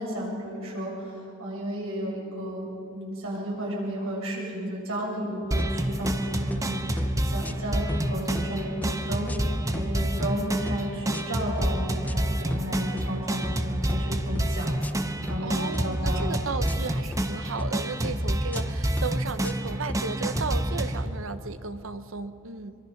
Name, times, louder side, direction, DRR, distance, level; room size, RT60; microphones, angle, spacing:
voice 1, 0.0-9.4 9.7-16.3, equal, 85° right, -3 dB, 7.1 m, -33 dB
sound 1, 5.5-21.1, right 1 dB, 15° right, 1.0 m, -28 dB
sound 2, 5.6-6.2 6.5-6.7 7.0-7.6 7.9-8.9 9.3-10.3 10.7-10.8 11.1-11.7 12.0-12.2 12.5-13.1 13.4-13.6 13.9-14.5 14.8-15.0 15.3-15.8 16.2-16.4 16.7-17.2 17.6-17.8 18.0-18.6 19.0-19.1 19.4-20.0 20.3-20.5, left 1 dB, 10° left, 0.6 m, -34 dB
voice 2, 15.4-22.7, right 4 dB, 70° right, 11 dB, 0.9 m, -34 dB
24.0 x 23.0 x 5.8 m, 2.7 s
head